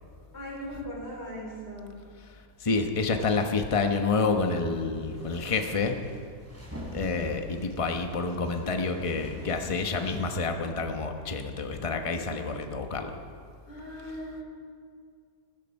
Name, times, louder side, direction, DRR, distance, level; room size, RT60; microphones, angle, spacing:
voice 1, 0.0-2.0 13.7-14.4, equal, 40° left, -3 dB, 4.4 m, -39 dB
voice 2, 2.6-5.9 6.9-13.1, left 4 dB, 25° left, 4 dB, 0.9 m, -28 dB
sound 1, 4.9-10.4, equal, 10° right, 3.6 m, -45 dB
16.0 x 13.0 x 5.4 m, 2.1 s
omnidirectional pair, 1.7 m